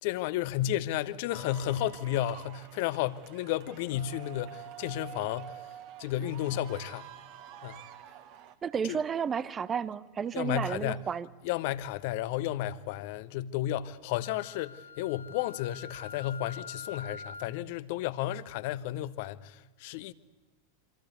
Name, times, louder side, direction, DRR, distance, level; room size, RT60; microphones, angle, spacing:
voice 1, 0.0-5.7 6.0-7.1 7.6-7.8 8.8-9.0 10.3-11.1 11.4-20.1, left 13 dB, 50° left, 1.2 m, -33 dB
sound 1, 1.3-8.5, right 11 dB, 45° right, 2.2 m, -48 dB
voice 2, 8.6-11.3, right 7 dB, 20° right, 1.0 m, -32 dB
Wind instrument woodwind instrument, 14.2-17.6, left 4 dB, 75° left, 1.0 m, -45 dB
27.0 x 26.0 x 8.4 m
figure-of-eight pair, 90°, 0 cm